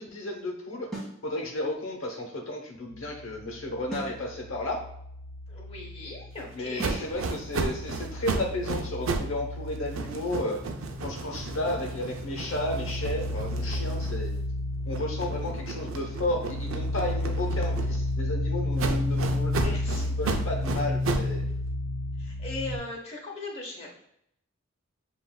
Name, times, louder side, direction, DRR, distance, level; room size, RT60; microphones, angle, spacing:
voice 1, 0.0-4.8 6.5-10.6 11.0-14.3 14.8-21.4, left 1 dB, 80° left, 1 dB, 0.9 m, -33 dB
sound 1, 0.9-1.2 3.9-4.2 6.8-7.1, right 2 dB, ahead, 1.3 m, -36 dB
sound 2, 2.9-6.7 7.0-22.8, left 2 dB, 45° right, 1.4 m, -32 dB
voice 2, 5.5-7.2 19.2-19.3 19.6-20.1 22.2-24.0, left 2 dB, 30° left, -2 dB, 1.0 m, -39 dB
sound 3, 6.8-9.4 9.7-14.5 14.9-18.2 18.8-21.4, right 3 dB, 90° right, 0.5 m, -34 dB
7.5 x 2.6 x 2.3 m, 0.73 s
head